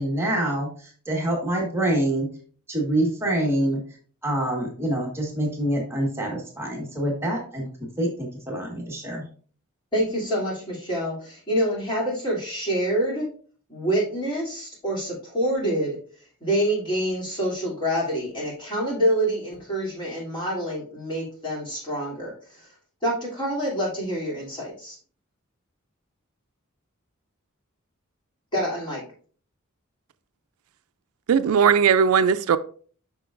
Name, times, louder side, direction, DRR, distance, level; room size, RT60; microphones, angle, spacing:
voice 1, 0.0-2.3 2.7-3.8 4.2-9.3, right 1 dB, 10° right, 1.4 m, -26 dB
voice 2, 9.9-13.3 13.7-16.0 16.4-22.3 23.0-25.0 28.5-29.0, equal, 25° left, 2.8 m, -26 dB
voice 3, 31.3-32.6, right 7 dB, 90° right, 0.4 m, -18 dB
6.9 x 5.9 x 2.5 m
head